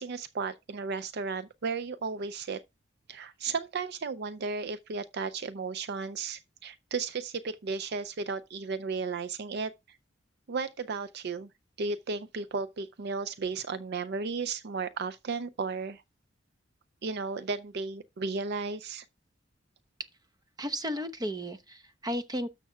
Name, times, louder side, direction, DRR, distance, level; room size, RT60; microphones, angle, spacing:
voice 1, 0.0-2.6 3.1-9.7 10.5-11.5 11.8-16.0 17.0-19.0, right 4 dB, 60° right, 0.5 m, -34 dB
voice 2, 20.6-22.5, equal, 20° right, 0.8 m, -34 dB
13.0 x 6.7 x 2.3 m
head